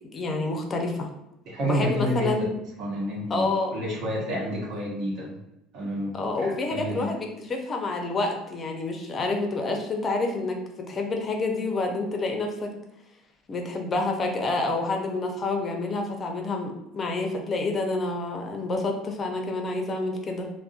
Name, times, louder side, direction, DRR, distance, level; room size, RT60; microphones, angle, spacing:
voice 1, 0.1-1.1 1.6-2.5 3.3-3.7 6.1-10.6 10.9-12.7 13.5-20.5, left 3 dB, 35° left, 2 dB, 0.5 m, -28 dB
voice 2, 1.4-2.5 2.8-5.4 5.7-7.1, equal, 60° right, -3 dB, 0.9 m, -29 dB
2.5 x 2.1 x 2.4 m, 0.87 s
supercardioid pair, 80°, 0 cm